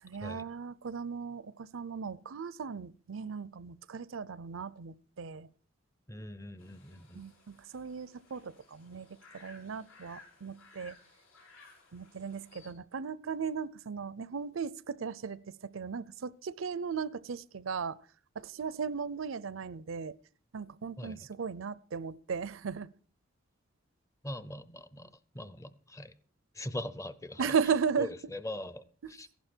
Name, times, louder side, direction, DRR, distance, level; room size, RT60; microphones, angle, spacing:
voice 1, 0.0-5.5 7.1-11.0 11.9-18.0 18.4-20.1 20.5-22.9 27.4-28.1 29.0-29.1, right 6 dB, 80° right, 0.5 m, -36 dB
voice 2, 6.1-7.3 21.0-21.2 24.2-26.1 26.5-27.5 28.0-29.3, left 1 dB, 15° left, 0.6 m, -41 dB
sound 1, 6.6-12.7, left 3 dB, 85° left, 4.1 m, -58 dB
15.0 x 11.5 x 4.4 m
head